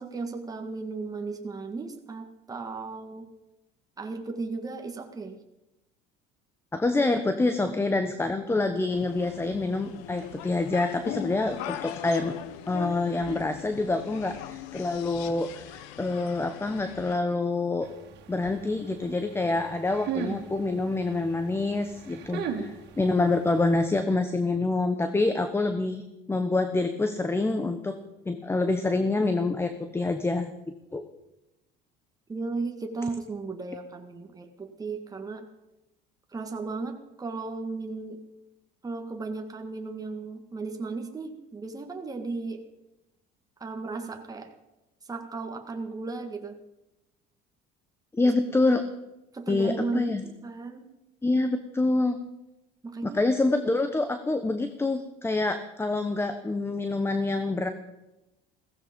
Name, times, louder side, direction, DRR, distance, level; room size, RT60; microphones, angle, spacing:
voice 1, 0.0-3.3 4.0-5.4 32.3-35.5 36.3-38.2 38.8-42.6 43.6-44.5 45.1-46.6 48.2-48.3 49.3-50.9 52.8-53.2, right 3 dB, 20° right, 4 dB, 1.8 m, -35 dB
voice 2, 6.7-12.4 12.7-17.9 18.3-26.0 26.3-28.0 28.2-30.5 30.9-31.0 48.1-48.8 49.5-50.2 51.2-52.2 53.0-57.7, left 2 dB, 10° left, 9 dB, 1.1 m, -26 dB
sound 1, 8.9-17.2, left 13 dB, 90° left, 1.0 m, -40 dB
sound 2, 17.8-23.8, right 7 dB, 60° right, 2.6 m, -38 dB
16.0 x 15.0 x 5.3 m, 0.97 s
cardioid pair, 115°, 20 cm